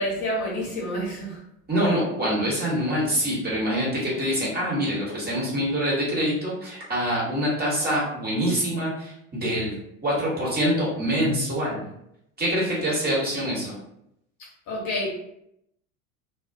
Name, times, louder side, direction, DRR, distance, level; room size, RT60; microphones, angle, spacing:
voice 1, 0.0-1.4 14.7-15.1, equal, 45° left, -4 dB, 0.9 m, -28 dB
voice 2, 1.7-9.7 10.0-11.8 12.4-13.7, equal, 25° right, -6 dB, 1.2 m, -25 dB
2.3 x 2.1 x 2.5 m, 0.77 s
figure-of-eight pair, 75°, 42 cm